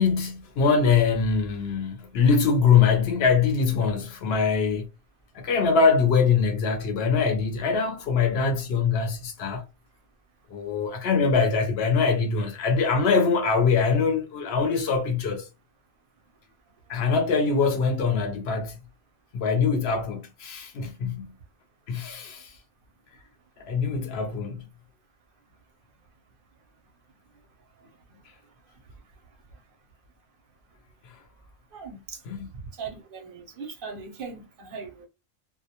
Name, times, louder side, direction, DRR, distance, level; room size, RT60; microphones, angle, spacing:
voice 1, 0.0-4.8 5.3-9.6 10.5-15.5 16.9-18.8 19.3-21.3 21.9-22.5 23.6-24.6 32.3-32.5, left 5 dB, 70° left, 0.8 m, -23 dB
voice 2, 31.7-32.2 32.8-35.1, right 5 dB, 60° right, 0.7 m, -39 dB
2.1 x 2.1 x 2.7 m
omnidirectional pair, 1.1 m